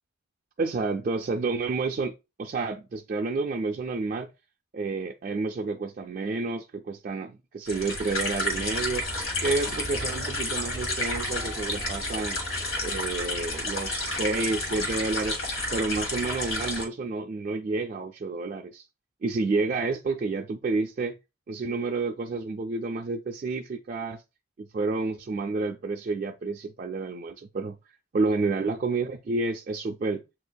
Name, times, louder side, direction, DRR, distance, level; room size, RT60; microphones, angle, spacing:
voice 1, 0.6-4.3 4.7-9.1 9.4-12.4 12.8-15.4 15.7-18.9 19.2-21.2 21.5-24.2 24.6-27.8 28.1-30.2, right 3 dB, 40° right, 0.3 m, -30 dB
sound 1, 7.7-16.8, left 1 dB, 85° left, 1.5 m, -30 dB
7.6 x 2.6 x 2.2 m
head